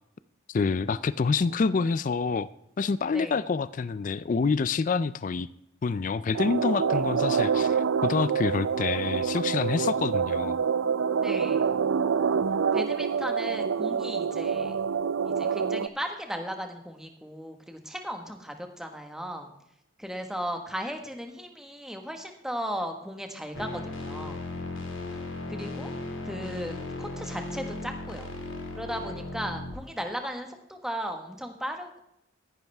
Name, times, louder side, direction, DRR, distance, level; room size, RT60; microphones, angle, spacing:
voice 1, 0.5-2.5 2.8-5.5 5.8-10.6, left 4 dB, 40° left, 16 dB, 0.3 m, -27 dB
sound 1, 6.3-15.9, right 6 dB, 75° right, 0.4 m, -26 dB
voice 2, 11.2-11.8 12.7-14.8 15.2-19.5 20.0-24.4 25.5-25.9 26.2-28.3 28.7-32.0, equal, ahead, 4 dB, 1.3 m, -36 dB
sound 2, 23.5-29.7, left 2 dB, 75° left, 2.2 m, -36 dB
14.0 x 11.0 x 3.4 m, 0.80 s
head